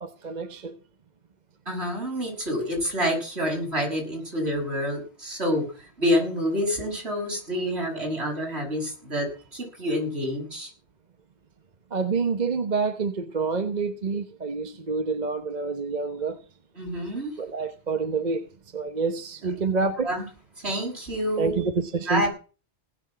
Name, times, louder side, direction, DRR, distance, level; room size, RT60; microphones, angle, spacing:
voice 1, 0.0-0.8 11.9-16.4 17.4-18.5 18.7-20.1 21.4-22.3, right 4 dB, 40° right, 1.1 m, -27 dB
voice 2, 1.7-5.6 6.0-9.3 9.5-10.7 16.8-17.3 20.0-20.3 20.6-21.7 22.1-22.3, equal, 70° right, 7.0 m, -27 dB
18.5 x 7.2 x 7.4 m
omnidirectional pair, 1.1 m